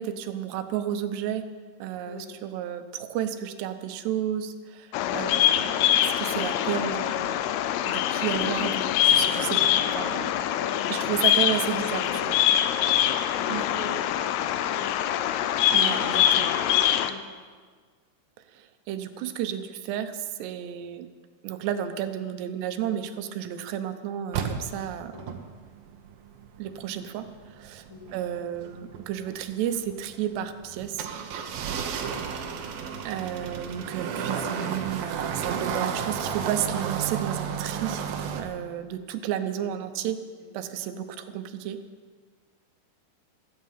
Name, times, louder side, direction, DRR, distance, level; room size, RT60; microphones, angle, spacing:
voice 1, 0.0-1.4 1.8-7.4 7.8-10.6 10.9-12.4 13.5-13.7 15.7-16.5 18.5-21.1 21.4-25.1 26.6-27.9 28.1-31.1 33.0-38.0 38.4-40.2 40.5-41.8, right 10 dB, 85° right, 9 dB, 3.0 m, -32 dB
Bird vocalization bird call bird song, 4.9-17.1, left 11 dB, 80° left, 2.7 m, -24 dB
voice 2, 10.5-10.9 11.5-12.6 13.0-15.1 17.0-17.3 25.1-25.3 27.9-28.1 32.1-32.6 39.5-39.8 40.4-40.5 40.9-41.1, left 3 dB, 40° left, -3 dB, 2.2 m, -42 dB
sound 1, 24.3-38.4, right 7 dB, 70° right, 2.6 m, -33 dB
16.0 x 14.5 x 5.7 m, 1.5 s
omnidirectional pair, 4.8 m